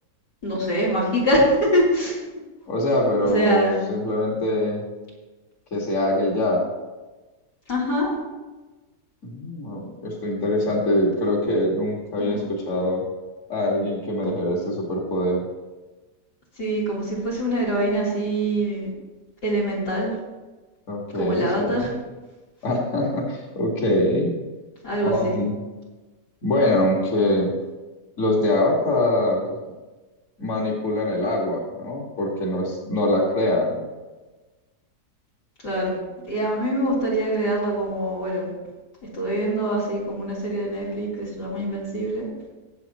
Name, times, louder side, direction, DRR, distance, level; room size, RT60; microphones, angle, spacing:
voice 1, 0.4-2.2 3.2-3.8 7.7-8.2 12.2-12.5 14.2-14.3 16.6-18.9 19.4-20.1 21.1-21.9 24.8-25.3 35.6-35.9 36.3-38.5 39.1-42.3, right 1 dB, 85° left, -6 dB, 4.2 m, -24 dB
voice 2, 2.7-4.8 5.7-6.6 9.2-13.0 13.5-15.4 20.9-21.9 22.6-24.3 25.0-25.5 26.4-27.5 28.2-29.5 30.4-33.7, left 1 dB, 45° left, -2 dB, 2.3 m, -23 dB
21.0 x 7.6 x 3.0 m, 1.2 s
omnidirectional pair, 1.8 m